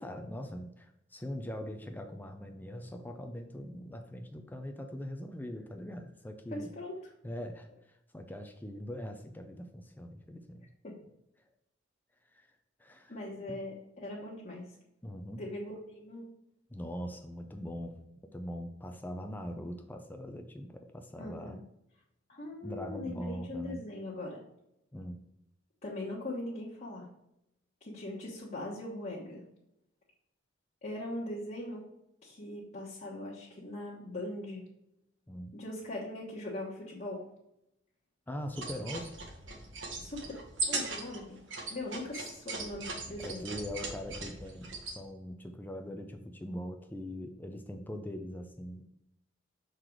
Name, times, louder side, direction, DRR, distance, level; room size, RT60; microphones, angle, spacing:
voice 1, 0.0-6.7 7.2-10.7 12.3-12.5 12.8-13.7 15.0-15.4 16.7-18.0 18.3-21.6 22.6-23.8 24.9-25.3 35.3-35.6 38.3-39.1 43.2-48.9, equal, 10° left, 5 dB, 0.5 m, -42 dB
voice 2, 6.5-6.9 10.8-10.9 13.1-14.7 15.4-16.3 21.2-21.6 22.3-24.4 25.8-27.1 27.8-29.4 30.8-31.8 32.2-34.6 35.5-37.3 40.0-40.2 40.7-41.4 41.7-43.5, left 1 dB, 40° left, -5 dB, 1.3 m, -40 dB
sound 1, 38.5-45.0, right 3 dB, 75° right, 1.4 m, -39 dB
6.5 x 3.9 x 4.5 m, 0.82 s
head